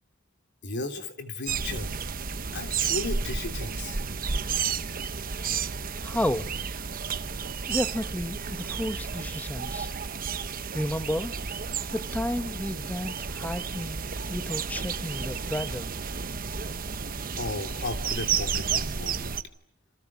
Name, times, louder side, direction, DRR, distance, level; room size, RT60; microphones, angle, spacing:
voice 1, 0.6-2.0 2.5-4.0 17.4-19.3, left 2 dB, 60° left, 3.2 m, -35 dB
sound 1, 1.5-19.4, right 6 dB, 45° right, 1.1 m, -32 dB
voice 2, 6.0-6.5 7.7-9.9 10.7-11.3 11.9-14.0 14.3-15.9, left 1 dB, 10° left, 1.1 m, -32 dB
28.5 x 27.0 x 7.2 m
head